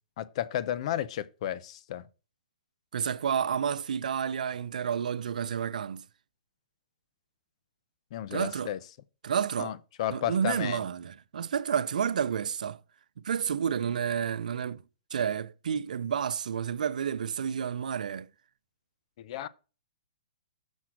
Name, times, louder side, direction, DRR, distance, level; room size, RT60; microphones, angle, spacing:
voice 1, 0.2-2.1 8.1-8.8 9.6-10.8 19.2-19.5, left 11 dB, 50° left, 0.7 m, -33 dB
voice 2, 2.9-6.0 8.3-8.7 9.2-9.7 10.1-12.8 13.2-14.8 15.1-18.3, right 7 dB, 80° right, 0.6 m, -30 dB
6.4 x 5.8 x 5.8 m
hypercardioid pair, 145°, 4 cm